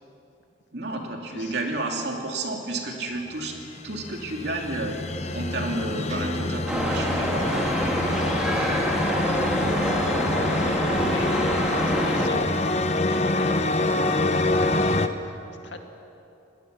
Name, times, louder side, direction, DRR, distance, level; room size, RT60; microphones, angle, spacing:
voice 1, 0.7-3.6 3.8-5.0 5.3-7.7, right 2 dB, 65° right, 1 dB, 2.8 m, -31 dB
sound 1, 3.5-15.1, left 2 dB, 35° left, 0.8 m, -26 dB
sound 2, 4.7-9.8, right 1 dB, 35° right, 1.6 m, -42 dB
sound 3, 6.7-12.3, equal, 5° right, 2.4 m, -26 dB
voice 2, 9.0-10.2 11.0-11.3 11.7-12.5 13.0-14.9 15.2-15.4 15.6-15.8, left 2 dB, 75° left, 4 dB, 2.0 m, -40 dB
20.0 x 19.5 x 7.0 m, 2.7 s
head